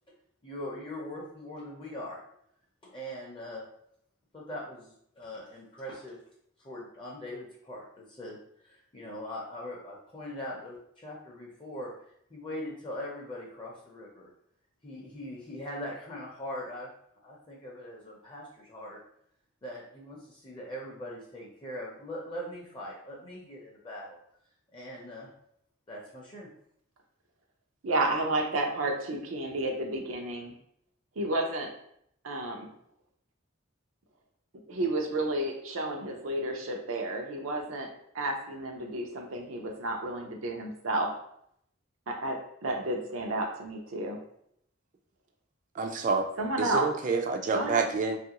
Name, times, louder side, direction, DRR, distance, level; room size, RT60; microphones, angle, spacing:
voice 1, 0.4-2.2 2.8-3.6 4.3-6.2 6.6-11.9 12.3-14.3 14.8-16.9 17.2-19.0 19.6-24.2 24.7-25.3 25.9-26.5, left 1 dB, 25° left, -3 dB, 0.5 m, -41 dB
voice 2, 27.8-30.5 31.2-31.7 32.2-32.7 34.7-37.9 38.1-41.1 42.1-44.2 46.4-46.9 47.5-47.8, right 2 dB, 90° right, 2 dB, 0.6 m, -31 dB
voice 3, 45.8-46.3 46.6-48.2, right 4 dB, 40° right, 5 dB, 0.3 m, -28 dB
3.0 x 2.4 x 2.8 m, 0.71 s
head